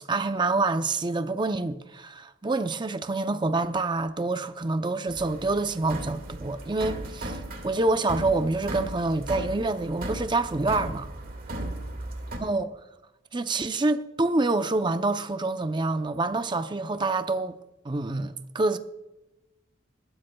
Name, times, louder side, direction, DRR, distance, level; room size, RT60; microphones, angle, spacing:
voice 1, 0.1-7.4 7.6-11.1 12.4-12.7 13.3-17.6 17.8-18.8, right 2 dB, 25° right, 0.5 m, -27 dB
sound 1, 5.1-12.4, right 1 dB, 50° right, 1.9 m, -36 dB
21.5 x 12.5 x 2.3 m
head